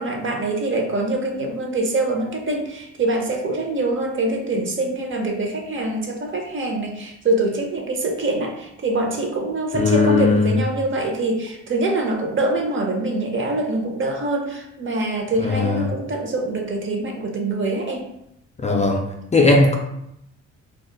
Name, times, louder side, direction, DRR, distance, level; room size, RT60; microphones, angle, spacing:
voice 1, 0.0-18.1, right 2 dB, 40° right, 2 dB, 0.7 m, -24 dB
voice 2, 9.7-10.5 15.4-15.9 18.6-19.0 19.3-19.8, left 3 dB, 25° left, 1 dB, 0.5 m, -17 dB
2.4 x 2.3 x 3.8 m, 0.79 s
cardioid pair, 90°, 30 cm